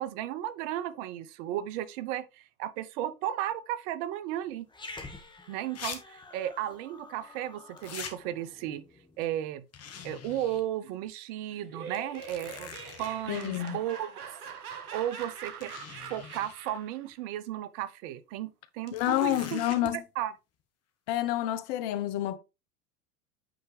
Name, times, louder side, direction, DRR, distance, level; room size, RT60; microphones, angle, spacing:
voice 1, 0.0-4.7 5.5-8.8 9.2-9.6 10.0-14.1 14.9-15.7 16.1-19.6 20.2-20.3, right 12 dB, 55° right, 0.8 m, -34 dB
Growling, 4.7-9.3, left 3 dB, 10° left, 1.5 m, -49 dB
sound 1, 5.8-6.0 6.2-6.3 7.8-8.1 9.7-10.6 11.1-11.2 11.9-13.7 14.8-14.9 15.6-16.6 18.9-19.9, left 7 dB, 35° left, 1.6 m, -43 dB
Laughter, 11.5-17.0, right 6 dB, 80° right, 1.4 m, -43 dB
voice 2, 13.3-13.8 18.9-20.0 21.1-22.4, left 13 dB, 55° left, 0.9 m, -29 dB
8.8 x 4.5 x 3.2 m
hypercardioid pair, 90°, 44 cm